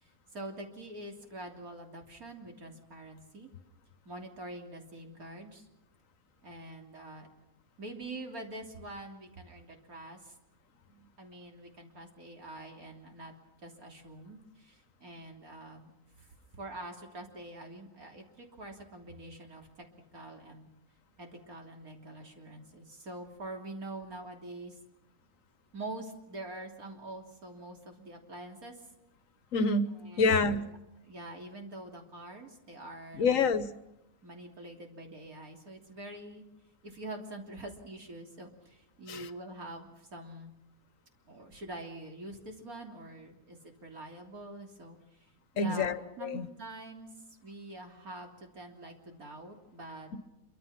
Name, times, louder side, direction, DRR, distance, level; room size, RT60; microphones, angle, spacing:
voice 1, 0.0-3.5 4.1-5.7 6.4-7.3 7.8-10.3 11.2-13.3 13.6-15.9 16.2-16.3 16.5-19.9 20.1-20.7 21.2-24.8 25.7-28.8 29.9-30.6 31.0-33.4 34.2-36.4 36.8-40.5 41.3-45.3 45.5-47.1 47.4-50.1, right 2 dB, 90° right, 2 dB, 3.7 m, -45 dB
voice 2, 29.5-30.7 33.1-33.7 39.1-39.3 45.6-46.5, left 4 dB, 65° left, 13 dB, 1.4 m, -27 dB
26.5 x 24.5 x 5.9 m, 0.92 s
omnidirectional pair, 1.5 m